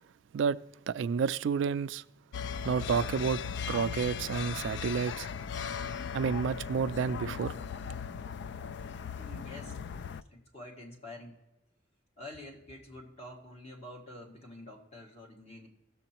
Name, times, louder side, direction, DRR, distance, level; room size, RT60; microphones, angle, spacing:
voice 1, 0.9-2.0 2.6-3.4 3.7-5.3 6.1-7.6, right 6 dB, 75° right, 0.3 m, -30 dB
sound 1, 2.3-10.2, left 7 dB, 65° left, 0.3 m, -38 dB
voice 2, 9.2-9.8 10.3-11.4 12.2-15.7, left 1 dB, 35° left, 2.0 m, -47 dB
17.0 x 7.0 x 2.9 m
head